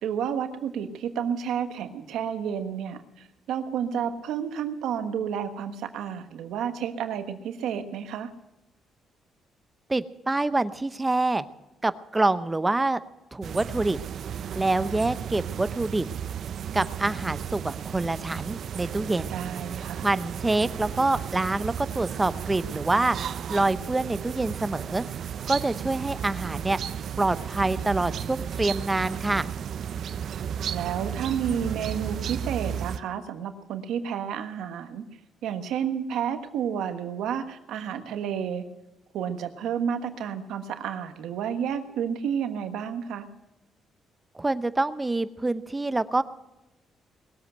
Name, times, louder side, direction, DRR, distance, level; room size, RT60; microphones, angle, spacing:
voice 1, 0.0-8.3 19.3-20.1 30.7-35.0 35.4-38.6 39.1-43.3, right 8 dB, 85° right, 8 dB, 1.4 m, -31 dB
voice 2, 9.9-11.4 11.8-13.0 13.3-14.0 14.5-16.1 16.7-19.3 20.0-23.2 23.5-25.0 25.5-26.8 27.2-29.5 44.3-46.2, right 2 dB, 15° right, 14 dB, 0.7 m, -26 dB
sound 1, 13.4-33.0, right 8 dB, 65° right, 0.5 m, -34 dB
20.5 x 7.9 x 7.9 m, 1.0 s
cardioid pair, 90°, 0 cm